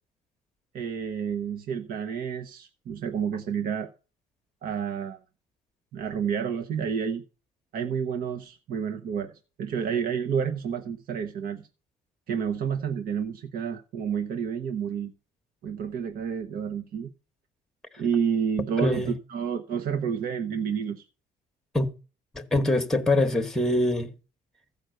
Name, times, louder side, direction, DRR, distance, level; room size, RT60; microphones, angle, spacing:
voice 1, 0.7-3.9 4.6-5.2 5.9-7.2 7.7-9.3 9.6-11.7 12.3-15.1 15.6-17.1 18.0-21.1, right 7 dB, 60° right, 1.1 m, -29 dB
voice 2, 18.8-19.1 21.7-21.9 22.3-24.1, left 1 dB, 5° left, 1.2 m, -24 dB
14.0 x 5.2 x 7.9 m
cardioid pair, 110°, 17 cm